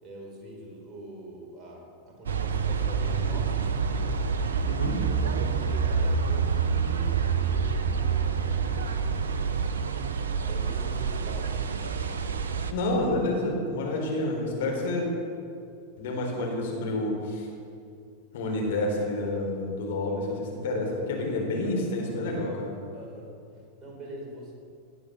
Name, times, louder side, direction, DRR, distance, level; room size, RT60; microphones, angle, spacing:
voice 1, 0.0-3.7 5.2-9.6 10.4-11.7 22.9-23.3 23.8-24.5, right 1 dB, 25° right, -1 dB, 4.6 m, -44 dB
sound 1, 2.3-12.7, right 6 dB, 65° right, 1.0 m, -27 dB
voice 2, 4.7-5.0 12.7-15.1 16.0-17.5 18.3-22.8, left 2 dB, 55° left, -1 dB, 4.3 m, -29 dB
18.5 x 11.0 x 6.5 m, 2.4 s
figure-of-eight pair, 90°, 0 cm